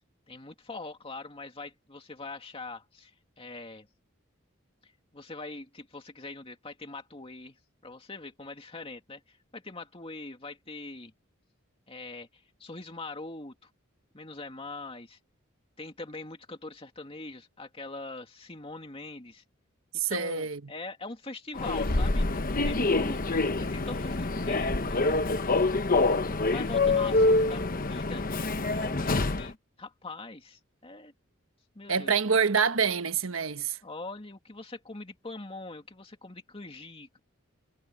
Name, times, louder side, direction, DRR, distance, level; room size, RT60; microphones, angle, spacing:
voice 1, 0.3-3.9 4.8-11.1 11.9-13.7 14.1-15.2 15.8-19.4 20.1-22.3 22.6-23.2 23.6-25.0 25.9-28.3 28.7-31.1 31.7-32.1 33.8-37.2, left 3 dB, 25° left, 2.5 m, -42 dB
voice 2, 19.9-20.6 31.9-33.8, right 6 dB, 75° right, 1.3 m, -26 dB
Human voice / Subway metro underground, 21.5-29.5, left 2 dB, 45° left, 1.0 m, -26 dB
head